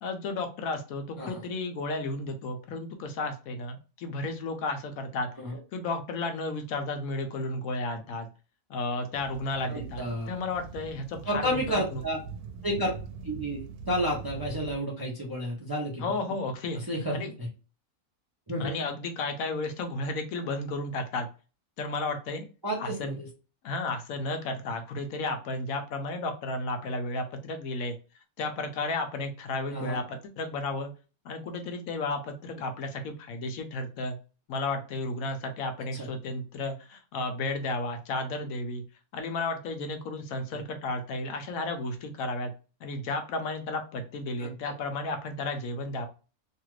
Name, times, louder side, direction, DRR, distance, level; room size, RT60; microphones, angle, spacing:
voice 1, 0.0-5.3 5.7-8.3 8.7-12.0 16.0-16.8 17.1-17.3 18.6-21.3 21.8-22.5 22.8-23.2 23.6-27.9 28.4-30.9 31.2-34.2 34.5-38.8 39.1-42.5 42.8-46.1, left 2 dB, 75° left, 6 dB, 1.0 m, -33 dB
sound 1, 9.1-14.8, right 5 dB, 85° right, 1.1 m, -42 dB
voice 2, 9.7-10.3 11.3-12.2 12.6-12.9 13.2-16.1 16.9-17.5 18.5-18.7 22.6-23.3 29.7-30.0 35.9-36.1 40.5-40.6 44.4-44.6, equal, 25° right, -3 dB, 0.5 m, -31 dB
2.8 x 2.4 x 3.1 m, 0.34 s
omnidirectional pair, 1.6 m